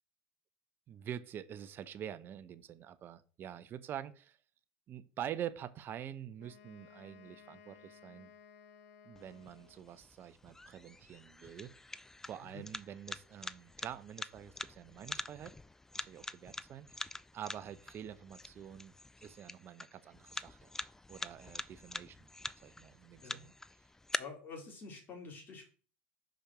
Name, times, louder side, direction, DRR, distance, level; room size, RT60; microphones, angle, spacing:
voice 1, 0.9-4.4 4.9-8.3 9.0-11.7 12.3-15.5 15.9-17.1 17.3-18.9 19.2-20.7 21.1-22.3 22.6-23.5, right 10 dB, 40° right, 11 dB, 0.8 m, -46 dB
Wind instrument woodwind instrument, 6.4-10.1, left 7 dB, 65° left, 1.1 m, -59 dB
sound 1, 9.2-24.2, left 2 dB, 10° left, 0.4 m, -46 dB
voice 2, 24.2-25.7, left 4 dB, 35° left, 0 dB, 3.5 m, -48 dB
5.1 x 5.1 x 6.1 m, 0.38 s
supercardioid pair, 105°, 6 cm